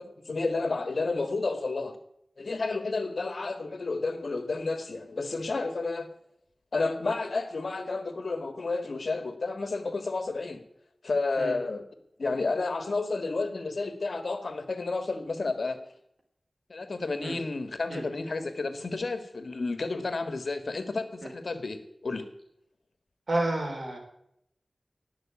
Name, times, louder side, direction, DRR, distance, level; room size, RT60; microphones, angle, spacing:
voice 1, 0.0-2.0 2.4-6.1 6.7-10.6 11.0-11.8 12.2-15.8 16.7-21.8 22.0-22.3, left 3 dB, 80° left, 9 dB, 1.8 m, -31 dB
voice 2, 23.3-24.0, right 2 dB, 70° right, 2 dB, 3.9 m, -30 dB
18.5 x 6.3 x 8.7 m, 0.75 s
wide cardioid pair, 50°, 0 cm